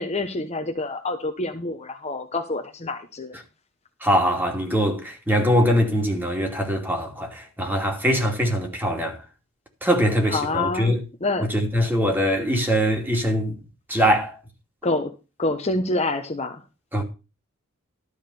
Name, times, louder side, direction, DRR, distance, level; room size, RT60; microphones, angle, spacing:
voice 1, 0.0-3.3 10.3-10.9 11.2-11.5 14.8-15.1 15.4-16.6, left 2 dB, 30° left, 0.9 m, -27 dB
voice 2, 4.0-9.2 9.8-11.0 11.4-13.6 13.9-14.4 16.9-17.0, equal, 10° right, 2.5 m, -22 dB
12.5 x 4.9 x 6.9 m
head